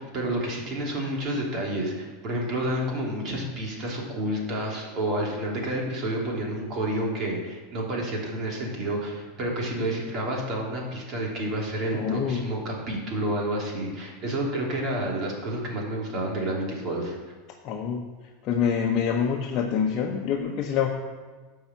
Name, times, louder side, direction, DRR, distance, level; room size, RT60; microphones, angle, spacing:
voice 1, 0.0-17.2, right 1 dB, 40° right, -2 dB, 3.0 m, -29 dB
voice 2, 11.9-12.5 17.6-18.1 18.4-20.9, left 7 dB, 45° left, 1 dB, 1.0 m, -26 dB
10.0 x 5.6 x 7.4 m, 1.4 s
supercardioid pair, 140°, 0 cm